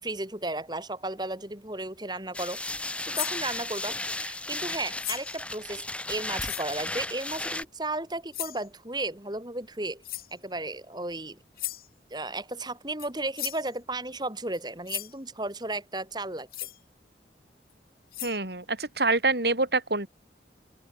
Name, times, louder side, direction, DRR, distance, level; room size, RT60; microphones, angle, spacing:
voice 1, 0.0-2.6 3.0-10.0 10.3-11.4 12.1-16.5, right 2 dB, 25° right, 6.1 m, -34 dB
sound 1, 2.3-7.6, left 2 dB, 5° left, 4.4 m, -34 dB
sound 2, 3.1-3.4 5.0-5.4 6.4-6.7 8.3-8.7 10.0-10.3 11.6-11.9 13.0-13.1 13.4-13.7 14.5-14.6 14.9-15.1 16.5-16.8 17.7-17.8 18.1-18.4, left 15 dB, 55° left, 4.0 m, -35 dB
voice 2, 18.2-20.1, right 3 dB, 65° right, 6.2 m, -26 dB
open air
head